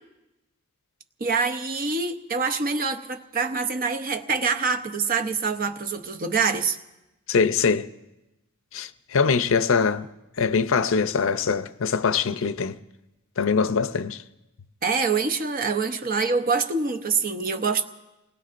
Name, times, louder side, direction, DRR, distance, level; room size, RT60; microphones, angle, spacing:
voice 1, 1.2-6.8 14.8-17.8, right 4 dB, 40° right, 0.8 m, -25 dB
voice 2, 7.3-7.9 8.7-10.1 10.4-12.8 13.4-14.2, left 5 dB, 65° left, 0.6 m, -23 dB
28.5 x 19.5 x 2.5 m
head